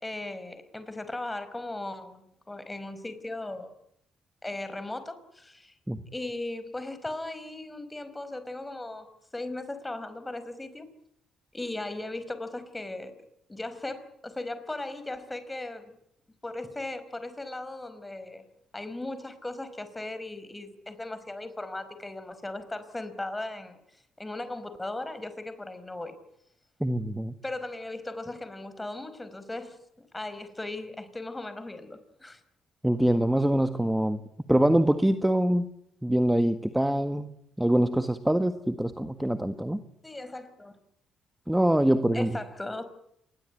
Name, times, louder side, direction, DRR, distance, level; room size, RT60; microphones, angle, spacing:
voice 1, 0.0-3.8 4.4-5.7 6.1-10.9 11.5-13.1 13.5-16.0 16.4-18.4 18.7-26.2 27.4-32.4 40.0-40.8 42.1-42.8, left 2 dB, 15° left, 12 dB, 5.2 m, -37 dB
voice 2, 26.8-27.3 32.8-34.2 34.5-35.7 36.0-37.3 37.6-39.8 41.5-42.4, right 1 dB, 5° right, 9 dB, 1.7 m, -24 dB
26.5 x 21.0 x 9.4 m, 0.77 s
cardioid pair, 75°, 0 cm